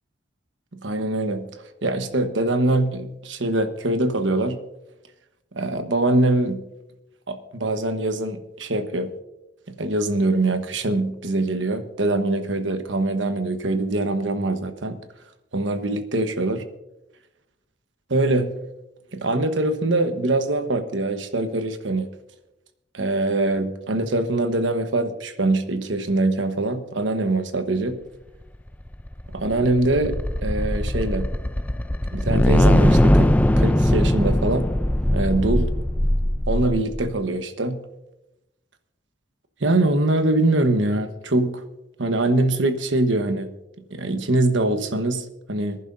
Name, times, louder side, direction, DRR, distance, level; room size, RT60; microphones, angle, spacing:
voice 1, 0.7-1.5 1.8-4.6 5.5-6.6 7.3-9.1 9.8-15.0 15.5-16.6 18.1-18.5 19.1-22.1 22.9-28.0 29.3-31.3 32.1-34.7 35.1-35.7 36.5-37.8 39.6-41.6 42.0-43.5 43.9-45.8, right 2 dB, 80° right, 8 dB, 1.2 m, -23 dB
sound 1, 28.7-37.1, left 1 dB, 10° left, 0.4 m, -20 dB
24.5 x 11.0 x 2.6 m, 0.93 s
head